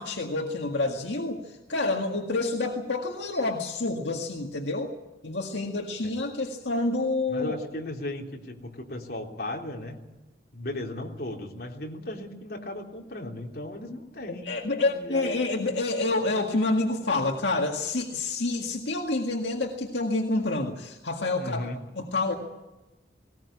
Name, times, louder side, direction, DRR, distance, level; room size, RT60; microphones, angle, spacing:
voice 1, 0.0-4.9 5.2-7.6 14.4-22.4, left 2 dB, 80° left, 2 dB, 1.9 m, -28 dB
voice 2, 7.3-10.1 10.5-15.5 21.3-21.8, left 1 dB, 55° left, 0 dB, 3.6 m, -36 dB
19.5 x 19.0 x 8.4 m, 1.1 s
head